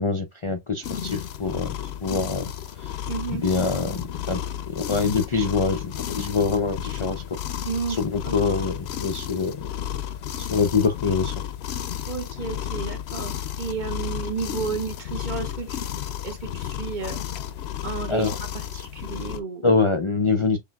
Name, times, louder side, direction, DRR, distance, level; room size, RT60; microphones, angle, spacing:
voice 1, 0.0-1.7 2.0-2.5 2.8-2.9 3.3-7.4 7.9-9.6 10.4-11.4 18.1-18.4 19.6-20.6, left 4 dB, 40° left, 0.5 m, -25 dB
sound 1, 0.8-19.4, left 10 dB, 65° left, 0.8 m, -32 dB
voice 2, 3.1-3.4 7.6-8.0 8.2-8.4 12.1-17.2 17.8-19.7, right 5 dB, 45° right, 1.1 m, -32 dB
5.9 x 3.4 x 2.3 m
omnidirectional pair, 1.2 m